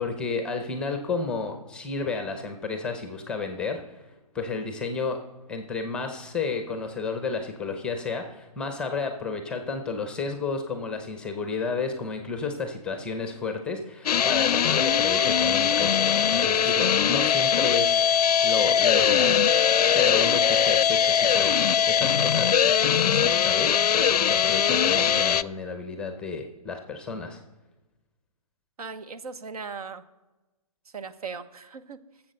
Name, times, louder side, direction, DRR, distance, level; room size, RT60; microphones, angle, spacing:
voice 1, 0.0-4.0 4.3-5.2 5.5-18.1 18.4-19.4 19.9-27.4, left 4 dB, 5° left, 6 dB, 0.6 m, -32 dB
sound 1, 14.1-25.4, left 8 dB, 90° left, 0.4 m, -21 dB
voice 2, 28.8-30.0 30.9-32.0, right 5 dB, 75° right, 11 dB, 1.0 m, -38 dB
13.5 x 7.4 x 6.5 m, 1.1 s
hypercardioid pair, 160°, 20 cm